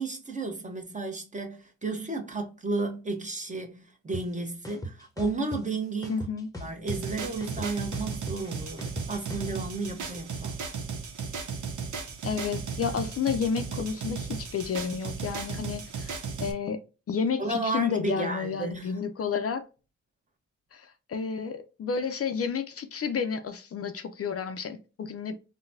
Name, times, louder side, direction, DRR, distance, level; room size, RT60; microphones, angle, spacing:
voice 1, 0.0-6.2 6.6-10.6 17.4-19.0, right 3 dB, 25° right, 1.0 m, -33 dB
sound 1, 4.1-4.2 4.6-5.6 6.0-7.1 7.4-9.5, right 1 dB, 10° left, 0.8 m, -38 dB
voice 2, 6.1-6.5 12.2-16.8 17.1-19.6 20.7-25.4, left 6 dB, 50° left, 0.5 m, -31 dB
sound 2, 6.9-16.5, right 5 dB, 85° right, 0.8 m, -36 dB
3.9 x 2.2 x 2.6 m
cardioid pair, 70°, 30 cm